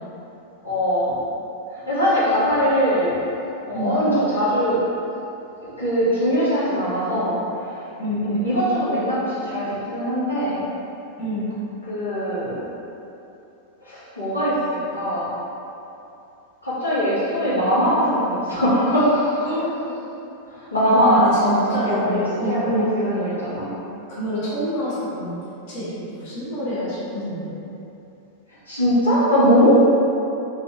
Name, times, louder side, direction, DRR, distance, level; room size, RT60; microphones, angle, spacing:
voice 1, 0.6-1.2 1.7-3.2 3.7-4.8 5.8-7.4 7.7-7.8 8.2-10.6 11.9-12.6 13.8-15.3 16.6-19.4 20.5-23.7 28.7-29.8, equal, 80° left, -12 dB, 1.0 m, -21 dB
voice 2, 3.7-4.0 8.0-8.3 11.2-11.5 19.4-19.9 20.9-22.9 24.1-25.4 25.7-27.7, equal, 45° left, -10 dB, 1.1 m, -27 dB
3.3 x 3.1 x 2.8 m, 2.9 s
figure-of-eight pair, 90°, 0 cm